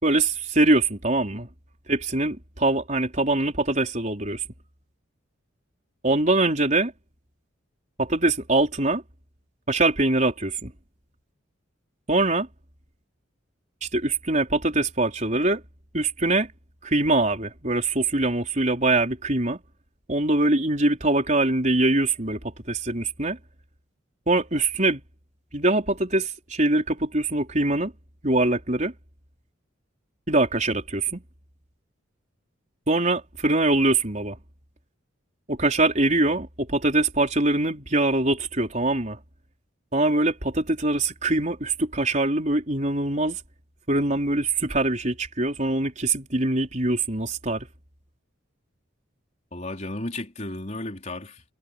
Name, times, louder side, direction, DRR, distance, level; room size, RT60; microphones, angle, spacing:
voice 1, 0.0-1.5 1.9-4.4 6.0-6.9 8.0-9.0 9.7-10.7 12.1-12.5 13.8-15.6 15.9-16.5 16.8-19.6 20.1-23.4 24.3-25.0 25.5-27.9 28.2-28.9 30.3-31.2 32.9-34.4 35.5-39.2 39.9-43.4 43.9-47.7, right 2 dB, 40° right, 4.6 m, -23 dB
voice 2, 49.5-51.4, left 2 dB, 35° left, 4.1 m, -34 dB
head